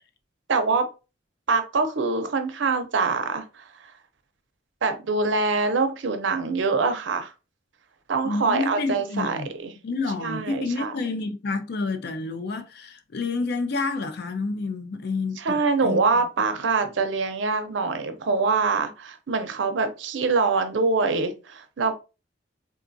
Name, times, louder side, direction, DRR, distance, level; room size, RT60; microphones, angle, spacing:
voice 1, 0.5-0.9 1.5-3.7 4.8-7.3 8.1-9.7 10.2-10.9 15.4-21.9, right 4 dB, 85° right, 0.6 m, -24 dB
voice 2, 8.2-9.5 9.8-16.2, left 3 dB, 60° left, 0.4 m, -29 dB
3.7 x 2.3 x 2.6 m
head